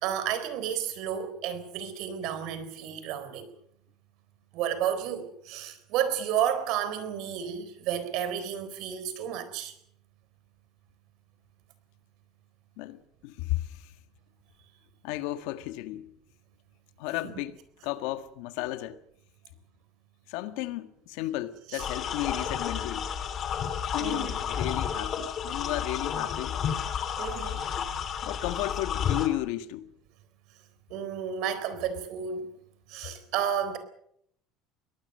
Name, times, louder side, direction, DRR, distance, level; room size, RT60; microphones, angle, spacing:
voice 1, 0.0-3.5 4.5-9.7 21.7-21.8 24.0-24.3 27.2-27.7 30.9-32.5 32.9-33.8, right 9 dB, 65° right, 3.9 m, -31 dB
voice 2, 12.8-13.9 15.0-16.1 17.0-19.0 20.3-23.1 23.9-26.6 28.2-29.9, left 16 dB, 75° left, 1.6 m, -34 dB
sound 1, 21.8-29.3, left 8 dB, 40° left, 2.7 m, -31 dB
24.0 x 19.0 x 6.7 m
cardioid pair, 140°, 0 cm